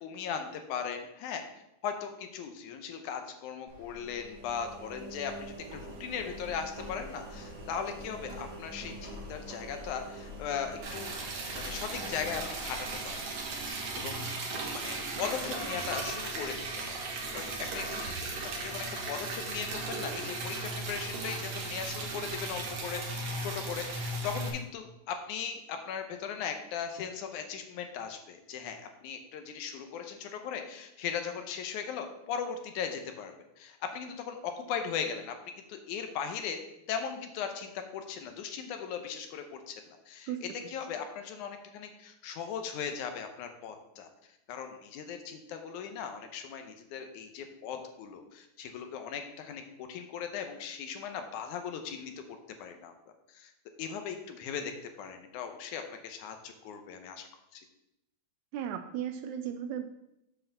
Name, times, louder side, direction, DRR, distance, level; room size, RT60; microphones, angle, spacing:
voice 1, 0.0-1.4 1.8-11.1 11.5-13.2 13.9-14.2 14.5-17.0 17.3-35.4 35.7-36.6 36.9-40.3 40.7-44.1 44.5-52.9 53.3-53.5 53.8-54.7 55.0-57.3 57.5-57.7, left 7 dB, 80° left, 6 dB, 2.2 m, -38 dB
Engine, 3.7-13.7, equal, 45° right, 1.8 m, -45 dB
Liquid, 10.8-24.5, right 3 dB, 60° right, 2.2 m, -36 dB
voice 2, 40.3-40.7 58.5-59.9, right 9 dB, 80° right, 8 dB, 1.8 m, -36 dB
7.6 x 4.8 x 6.4 m, 0.86 s
omnidirectional pair, 3.6 m